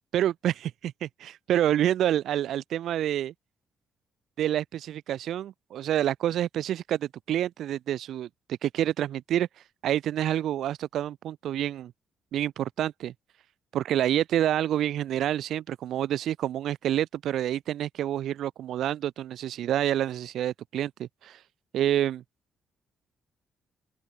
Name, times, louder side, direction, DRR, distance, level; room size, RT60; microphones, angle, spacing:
voice 1, 0.1-3.3 4.4-8.3 8.6-9.5 9.8-11.9 12.3-13.1 13.7-21.4 21.7-22.2, right 11 dB, 70° right, 2.5 m, -28 dB
open air
cardioid pair, 125°, 0 cm